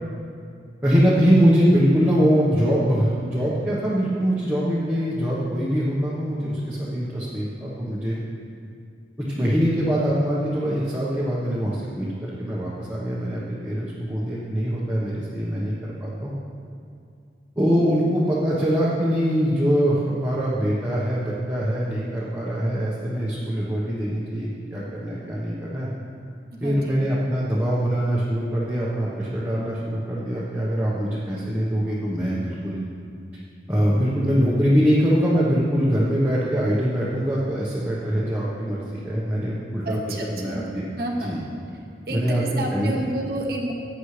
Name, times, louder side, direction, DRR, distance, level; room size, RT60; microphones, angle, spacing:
voice 1, 0.8-8.2 9.2-16.3 17.6-25.9 26.6-32.8 33.7-40.0 40.3-40.6 41.2-41.4 42.1-43.0, equal, 10° right, -8 dB, 1.2 m, -23 dB
voice 2, 26.5-27.1 39.8-41.4 41.7-41.8 42.1-43.7, right 1 dB, 55° right, -1 dB, 1.3 m, -30 dB
15.5 x 9.5 x 3.3 m, 2.4 s
head